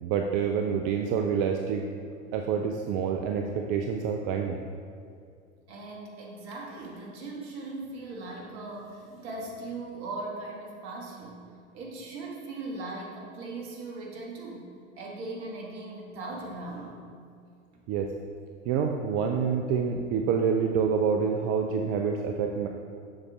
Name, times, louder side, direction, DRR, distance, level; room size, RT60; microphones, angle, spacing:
voice 1, 0.0-1.8 2.3-4.6 17.9-18.1 18.7-22.7, right 6 dB, 40° right, 3 dB, 0.5 m, -27 dB
voice 2, 5.7-17.1, right 2 dB, 55° right, -1 dB, 1.6 m, -39 dB
7.2 x 6.5 x 3.5 m, 2.3 s
figure-of-eight pair, 85°, 37 cm